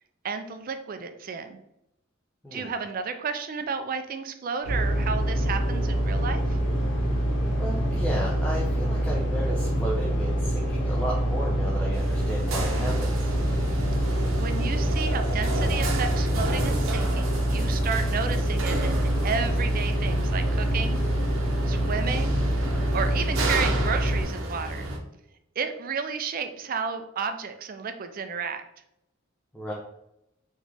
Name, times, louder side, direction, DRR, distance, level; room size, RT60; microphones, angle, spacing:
voice 1, 0.2-1.6 2.5-6.4 14.4-21.0 21.7-22.4 22.9-24.9 25.6-28.6, right 5 dB, 45° right, 8 dB, 0.4 m, -32 dB
sound 1, 4.6-24.2, right 1 dB, 80° left, 1.5 m, -25 dB
voice 2, 7.6-13.3 29.5-29.7, equal, 5° left, -5 dB, 0.7 m, -33 dB
sound 2, 11.9-25.0, right 2 dB, 85° right, 0.8 m, -33 dB
4.0 x 3.1 x 3.4 m, 0.82 s
head